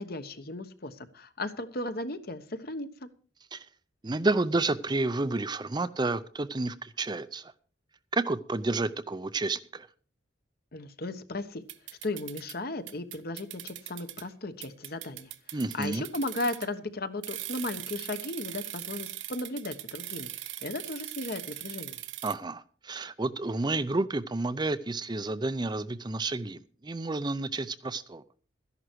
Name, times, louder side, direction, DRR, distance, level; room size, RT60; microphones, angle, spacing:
voice 1, 0.0-3.1 10.7-11.6 12.0-22.0, left 2 dB, 55° left, 1.2 m, -36 dB
voice 2, 4.0-7.5 8.1-9.9 15.5-16.0 22.2-28.2, right 2 dB, 25° right, 0.5 m, -30 dB
sound 1, 11.7-12.6 12.9-14.2 14.6-16.8 17.2-22.4, right 14 dB, 80° right, 0.9 m, -40 dB
14.0 x 11.0 x 4.6 m
head